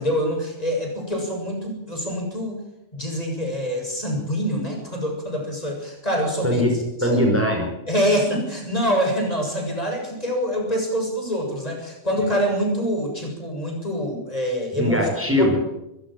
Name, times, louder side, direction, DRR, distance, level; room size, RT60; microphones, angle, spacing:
voice 1, 0.0-2.6 2.9-6.6 7.0-7.2 7.9-15.0 15.3-15.6, equal, 30° left, 1 dB, 7.3 m, -25 dB
voice 2, 6.4-7.7 14.7-15.6, left 1 dB, 10° right, 1 dB, 5.0 m, -21 dB
26.0 x 15.5 x 7.7 m, 0.89 s
omnidirectional pair, 1.2 m